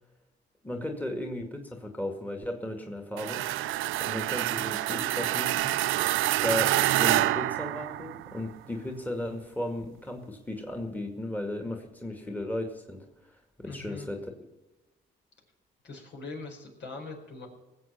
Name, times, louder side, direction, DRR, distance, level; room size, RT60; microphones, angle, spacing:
voice 1, 0.6-3.5 3.9-5.8 6.4-13.3 13.6-14.3, left 1 dB, 10° left, 3 dB, 2.1 m, -35 dB
sound 1, 3.2-8.4, right 15 dB, 85° right, 0.5 m, -27 dB
voice 2, 13.6-14.1 15.8-17.5, left 3 dB, 60° left, 1 dB, 5.0 m, -41 dB
19.5 x 8.0 x 5.9 m, 1.1 s
cardioid pair, 90°, 20 cm